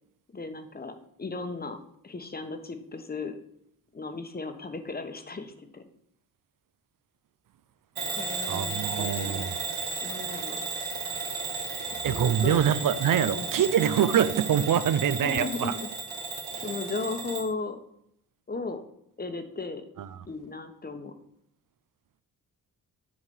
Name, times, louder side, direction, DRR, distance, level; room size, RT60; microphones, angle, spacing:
voice 1, 0.3-0.9 1.2-1.8 2.0-3.4 3.9-5.8 8.2-9.4 10.0-10.6 11.9-12.6 13.3-13.5 15.2-15.9 16.6-17.8 18.5-18.8 19.2-19.8 20.3-21.1, left 3 dB, 25° left, 7 dB, 1.0 m, -36 dB
Bell / Alarm, 8.0-17.5, right 4 dB, 80° right, 1.6 m, -34 dB
voice 2, 8.5-9.5 12.0-15.8 16.5-16.7 20.0-20.1, right 9 dB, 60° right, 14 dB, 0.5 m, -25 dB
8.5 x 4.8 x 5.4 m, 0.74 s
cardioid pair, 110°, 36 cm